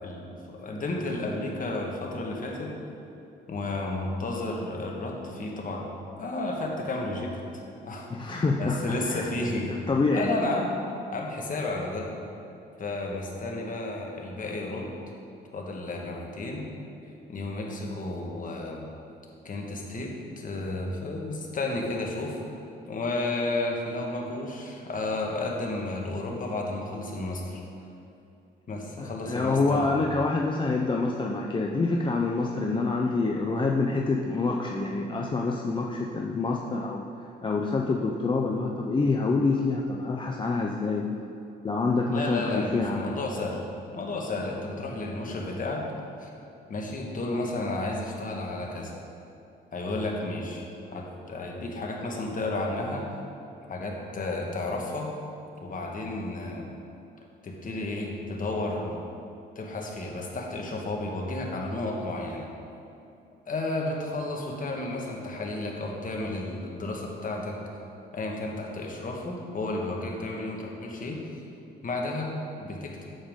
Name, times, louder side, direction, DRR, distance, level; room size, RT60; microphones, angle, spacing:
voice 1, 0.0-2.7 3.5-5.9 6.2-9.7 10.1-10.7 11.1-12.1 12.8-14.9 15.5-16.7 17.3-18.9 19.4-20.1 20.4-22.4 22.8-27.6 28.7-30.1 42.1-43.6 43.9-45.9 46.2-46.3 46.7-48.9 49.7-50.6 50.9-53.0 53.7-55.1 55.6-56.7 57.4-59.0 59.5-62.5 63.5-67.6 68.1-71.4 71.8-73.0, left 2 dB, 45° left, 0 dB, 1.4 m, -32 dB
voice 2, 8.1-9.3 9.9-10.3 29.0-37.0 37.4-41.1 41.6-43.1, left 3 dB, 25° left, 0 dB, 0.5 m, -26 dB
8.5 x 7.1 x 3.6 m, 2.7 s
cardioid pair, 90°, 20 cm